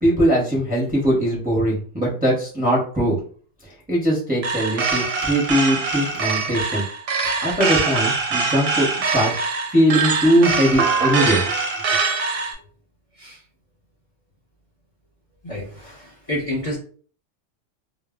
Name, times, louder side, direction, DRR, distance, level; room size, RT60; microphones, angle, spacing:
voice 1, 0.0-3.2 3.6-6.8 7.4-9.3 9.7-11.4, equal, 10° right, -3 dB, 0.6 m, -20 dB
sound 1, 4.4-12.5, right 4 dB, 60° right, 0.7 m, -23 dB
voice 2, 15.4-16.8, left 1 dB, 35° left, -3 dB, 0.7 m, -29 dB
2.0 x 2.0 x 3.4 m, 0.43 s
omnidirectional pair, 1.3 m